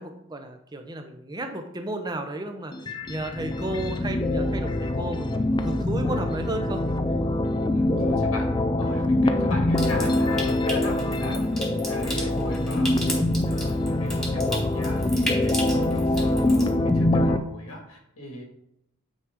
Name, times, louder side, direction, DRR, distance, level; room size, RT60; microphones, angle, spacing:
voice 1, 0.0-6.8, right 1 dB, 20° right, 5 dB, 0.7 m, -33 dB
sound 1, 2.7-17.4, left 1 dB, 20° left, 0.3 m, -24 dB
voice 2, 7.7-13.0 13.5-18.4, left 1 dB, 85° left, 1 dB, 2.0 m, -38 dB
Water tap faucet / Sink (filling or washing) / Trickle dribble, 9.7-16.7, equal, ahead, 1.4 m, -36 dB
8.7 x 4.8 x 3.6 m, 0.79 s
head